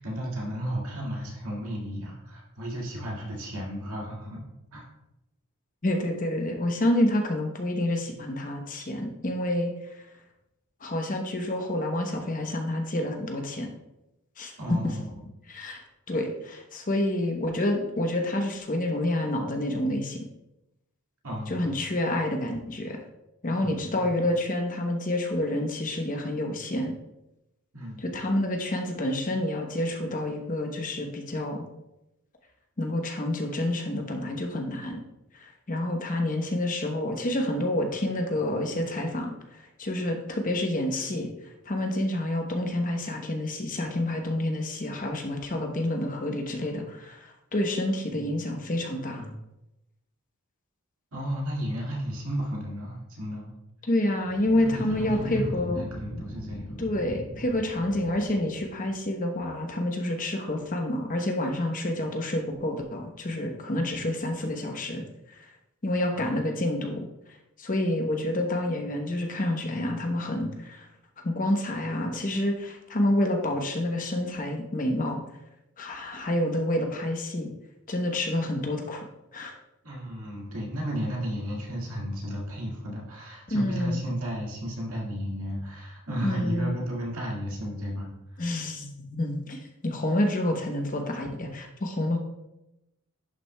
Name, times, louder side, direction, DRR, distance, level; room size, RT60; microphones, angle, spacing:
voice 1, 0.0-4.8 14.6-15.2 21.2-21.7 23.6-24.2 27.7-28.1 51.1-53.5 54.6-56.8 66.1-66.4 79.8-88.1, equal, 70° right, -3 dB, 2.0 m, -34 dB
voice 2, 5.8-9.7 10.8-13.7 14.4-14.9 15.5-15.8 16.1-20.2 21.5-23.0 23.4-27.0 28.0-31.7 32.8-35.0 35.3-41.3 41.6-49.3 53.9-55.8 56.8-65.0 65.8-67.1 67.6-70.9 71.2-75.2 75.8-77.5 77.9-79.0 79.3-79.5 83.5-84.0 86.2-86.7 88.4-92.2, left 1 dB, 35° left, 3 dB, 0.8 m, -28 dB
sound 1, 54.1-58.9, equal, 70° left, 1.2 m, -40 dB
11.0 x 6.0 x 2.2 m, 0.90 s
head